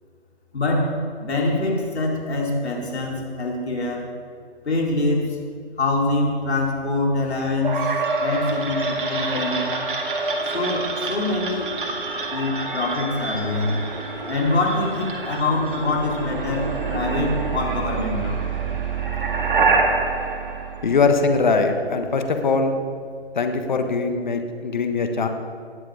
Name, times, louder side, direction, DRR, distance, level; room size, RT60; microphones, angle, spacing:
voice 1, 0.5-0.9 1.2-4.1 4.6-5.4 5.8-7.9 8.2-9.8 10.5-11.7 12.3-13.8 14.3-18.4, left 2 dB, 85° left, -2 dB, 4.1 m, -24 dB
sound 1, 7.6-21.5, right 4 dB, 55° right, 2.1 m, -26 dB
voice 2, 20.8-22.8 23.3-25.3, left 4 dB, 45° left, 6 dB, 1.4 m, -21 dB
19.0 x 7.8 x 5.0 m, 2.2 s
hypercardioid pair, 170°, 32 cm